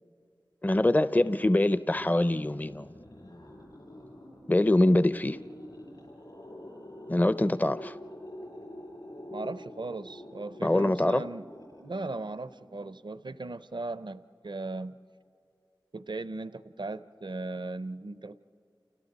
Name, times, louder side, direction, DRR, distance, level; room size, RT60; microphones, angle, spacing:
voice 1, 0.6-2.9 4.5-5.4 7.1-8.0 10.6-11.2, left 1 dB, 20° left, 13 dB, 0.5 m, -24 dB
sound 1, 1.8-12.9, left 1 dB, 65° left, 7.6 m, -47 dB
voice 2, 9.3-11.5 11.8-15.0 15.9-18.4, right 2 dB, 70° right, 14 dB, 0.5 m, -37 dB
30.0 x 29.0 x 4.0 m, 2.6 s
wide cardioid pair, 45°, 8 cm